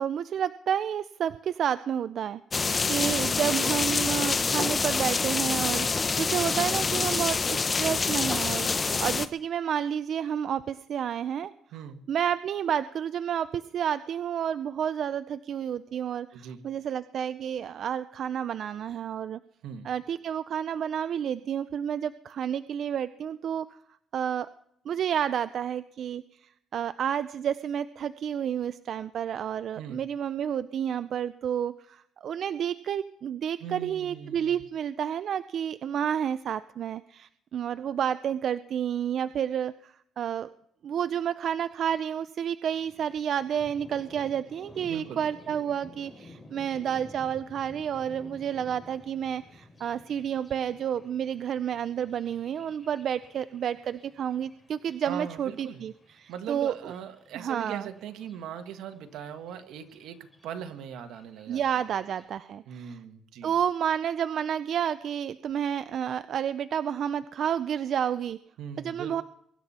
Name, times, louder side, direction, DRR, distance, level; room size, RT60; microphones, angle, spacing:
voice 1, 0.0-2.4 2.9-5.9 6.2-8.7 9.0-11.5 12.1-19.4 19.8-23.8 24.1-24.5 24.9-40.5 40.8-55.9 56.2-56.9 57.3-57.9 61.5-63.0 63.4-68.4 68.8-69.2, right 9 dB, 65° right, 13 dB, 0.5 m, -30 dB
sound 1, 2.5-9.3, left 4 dB, 35° left, 0.9 m, -26 dB
voice 2, 2.6-3.2 8.7-9.0 11.7-12.0 16.3-16.6 19.6-19.9 29.8-30.0 33.6-34.7 44.8-45.2 55.0-55.8 56.3-61.8 62.7-63.6 68.6-69.2, right 8 dB, 90° right, 8 dB, 1.5 m, -40 dB
Thunder, 42.7-62.2, left 2 dB, 15° left, 5.3 m, -53 dB
23.5 x 11.5 x 4.3 m, 0.72 s
cardioid pair, 90°, 0 cm